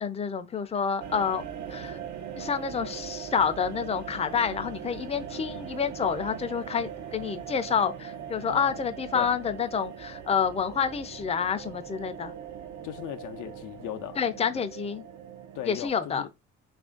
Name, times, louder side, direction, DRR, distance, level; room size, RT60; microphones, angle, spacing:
voice 1, 0.0-1.4 1.7-2.0 2.4-12.3 14.2-15.0 15.7-16.2, left 6 dB, 20° left, 0.4 m, -28 dB
sound 1, 1.0-15.9, right 8 dB, 75° right, 0.7 m, -40 dB
voice 2, 8.5-8.8 9.1-9.3 12.8-14.2 14.5-14.7 15.5-16.3, left 11 dB, 85° left, 0.5 m, -37 dB
3.1 x 2.5 x 3.7 m
cardioid pair, 90°, 30 cm